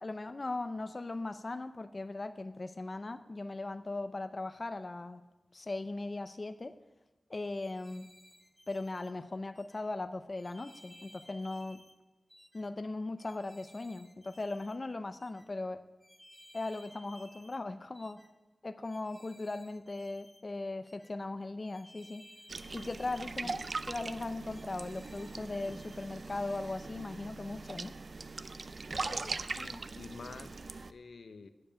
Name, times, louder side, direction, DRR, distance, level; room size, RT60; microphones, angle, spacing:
voice 1, 0.0-5.2 5.5-6.7 7.3-8.1 8.7-11.8 12.5-15.8 16.5-18.2 18.6-22.3 22.7-23.6 23.9-27.9, left 2 dB, 40° left, 10 dB, 0.5 m, -38 dB
sound 1, 7.5-9.1 9.5-9.8 10.4-12.0 12.3-12.6 13.2-14.8 15.2-15.5 16.0-17.6 17.9-18.3 18.8-20.4 20.8-21.1 21.6-23.3 23.6-23.9 24.5-26.1 26.5-26.8, left 1 dB, 5° left, 1.1 m, -59 dB
sound 2, 22.5-30.9, right 3 dB, 55° right, 0.5 m, -41 dB
voice 2, 28.9-30.5 30.9-31.5, left 4 dB, 80° left, 11 dB, 0.7 m, -48 dB
9.5 x 7.0 x 8.8 m, 1.1 s
wide cardioid pair, 75°, 0 cm